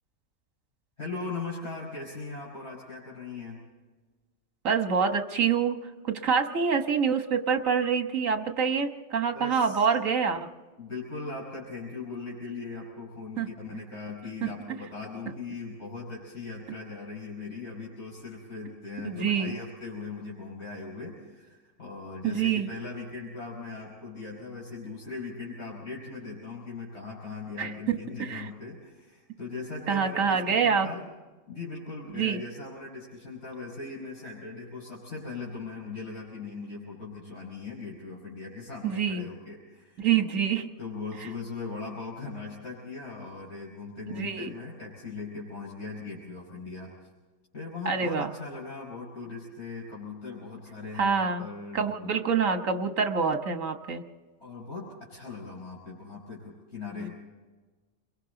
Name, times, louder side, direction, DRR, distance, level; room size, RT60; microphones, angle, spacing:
voice 1, 1.0-3.7 9.3-9.8 10.8-31.1 31.5-40.1 40.8-46.9 47.5-52.0 54.4-57.1, left 4 dB, 55° left, -5 dB, 5.7 m, -39 dB
voice 2, 4.6-5.8 6.0-10.5 13.4-13.5 14.4-14.5 19.0-19.5 22.3-22.7 27.6-27.7 28.2-28.5 29.9-30.9 32.1-32.4 38.8-39.3 40.0-40.7 44.1-44.5 47.9-48.3 51.0-51.4 51.7-54.0 57.0-57.1, right 6 dB, 75° right, 6 dB, 1.8 m, -26 dB
29.5 x 22.5 x 4.0 m, 1.3 s
omnidirectional pair, 1.4 m